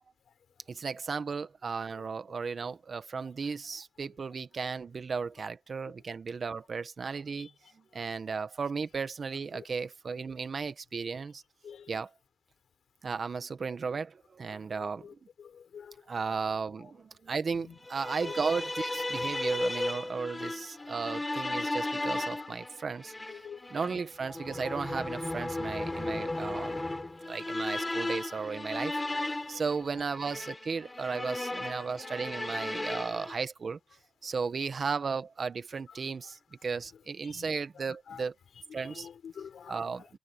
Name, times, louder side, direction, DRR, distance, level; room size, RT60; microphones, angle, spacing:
voice 1, 0.7-7.5 7.7-11.4 11.9-12.1 13.0-15.1 16.1-23.1 23.7-26.8 27.3-29.0 29.5-33.8 34.2-38.3 38.7-39.1 39.7-40.2, right 5 dB, 55° right, 1.5 m, -35 dB
voice 2, 14.8-15.1 15.4-16.0 17.5-17.8 18.2-18.3 20.8-20.9 23.3-23.6 23.9-24.0 26.2-26.8 31.8-32.4 37.2-37.5 38.1-38.2 38.8-39.8, left 7 dB, 80° left, 4.0 m, -48 dB
sound 1, 17.8-33.4, left 2 dB, 20° left, 3.9 m, -35 dB
cardioid pair, 85°, 0 cm